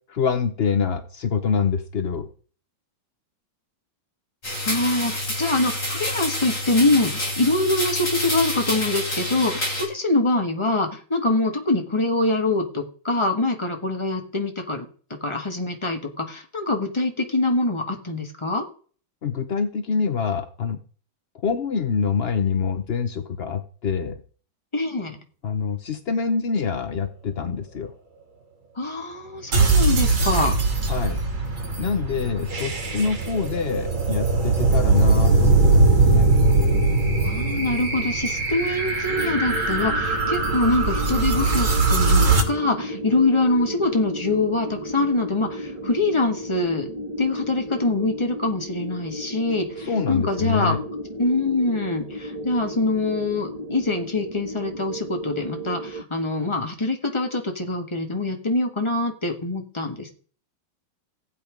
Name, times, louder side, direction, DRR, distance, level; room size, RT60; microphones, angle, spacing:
voice 1, 0.1-2.3 19.2-20.8 21.4-24.2 25.4-27.9 30.9-31.2 31.8-36.3 49.8-50.8, left 6 dB, 65° left, 9 dB, 0.6 m, -25 dB
sound 1, 4.4-9.8, left 1 dB, 35° left, 7.8 m, -28 dB
voice 2, 4.6-14.9 15.2-18.6 24.7-25.2 28.7-30.5 37.2-46.9 47.2-50.8 51.2-60.1, left 2 dB, 15° left, 4 dB, 1.5 m, -24 dB
sound 2, 29.5-42.4, right 3 dB, 75° right, 3.2 m, -20 dB
sound 3, 39.1-56.0, equal, 20° right, 1.0 m, -34 dB
15.5 x 8.6 x 5.1 m, 0.44 s
omnidirectional pair, 2.2 m